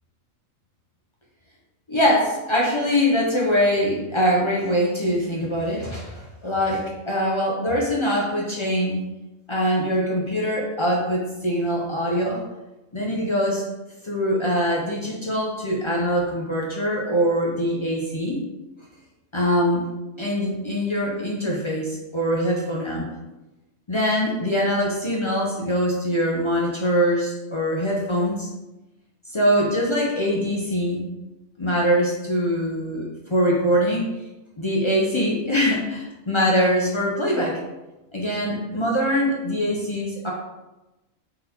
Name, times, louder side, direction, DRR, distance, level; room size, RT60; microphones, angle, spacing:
voice 1, 1.9-9.0 9.5-12.4 12.9-13.7 14.0-18.4 19.3-19.8 20.2-23.1 23.9-28.5 29.3-31.1 31.6-34.1 34.6-37.6 38.1-40.3, equal, 40° left, -4 dB, 0.4 m, -23 dB
4.0 x 3.9 x 2.8 m, 1.0 s
omnidirectional pair, 1.4 m